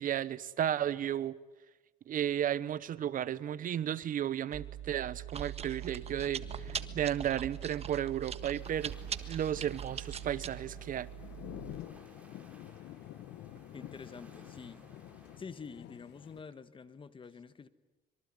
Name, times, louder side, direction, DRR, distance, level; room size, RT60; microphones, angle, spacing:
voice 1, 0.0-1.4 2.1-9.0 9.3-11.1, right 10 dB, 55° right, 18 dB, 1.0 m, -34 dB
Chewing mastication, 4.5-11.8, right 9 dB, 40° right, 1.5 m, -42 dB
sound 1, 6.0-16.4, left 13 dB, 80° left, 1.2 m, -50 dB
sound 2, 8.6-15.4, right 2 dB, 10° right, 6.5 m, -60 dB
voice 2, 13.7-14.9 15.4-17.7, left 5 dB, 30° left, 14 dB, 1.4 m, -47 dB
25.5 x 23.5 x 9.7 m, 1.1 s
cardioid pair, 110°, 17 cm